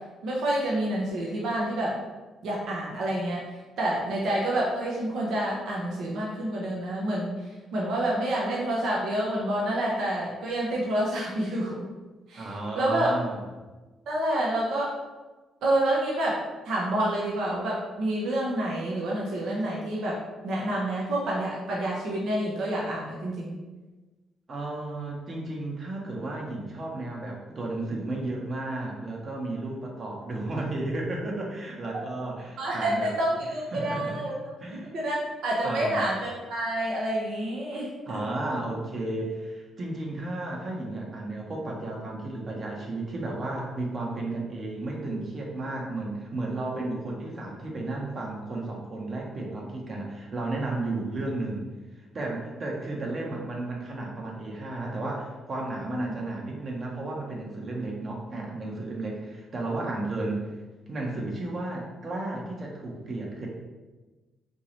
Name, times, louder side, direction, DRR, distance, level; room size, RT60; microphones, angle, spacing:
voice 1, 0.2-1.9 2.4-3.4 3.8-11.8 12.3-13.1 14.1-14.9 15.6-16.4 16.6-20.2 20.4-23.6 32.6-34.3 34.7-38.2 46.7-46.9 55.9-56.2, right 1 dB, 75° right, -5 dB, 0.9 m, -28 dB
voice 2, 12.3-13.4 24.5-33.1 33.7-34.1 34.6-34.9 35.6-36.1 38.1-51.7 52.1-60.5 60.9-63.5, right 2 dB, 45° right, -1 dB, 1.1 m, -33 dB
4.5 x 3.0 x 3.2 m, 1.2 s
cardioid pair, 90°, 0 cm